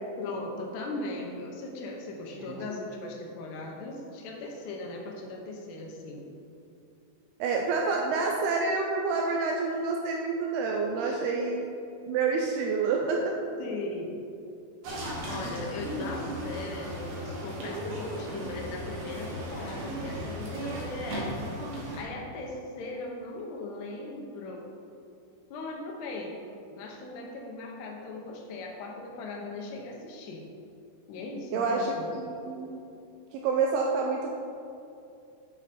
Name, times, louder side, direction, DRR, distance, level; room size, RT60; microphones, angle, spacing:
voice 1, 0.2-6.3 10.9-11.3 13.6-14.1 15.2-21.4 21.9-24.7 25.5-26.4 26.7-30.5 31.1-32.2, left 2 dB, 75° left, 0 dB, 3.0 m, -38 dB
voice 2, 7.4-11.7 12.1-13.3 31.5-32.8 33.3-34.4, right 4 dB, 85° right, 1 dB, 2.3 m, -28 dB
sound 1, 14.8-22.0, right 1 dB, 55° right, 2.1 m, -36 dB
9.1 x 8.8 x 4.2 m, 2.6 s
omnidirectional pair, 5.2 m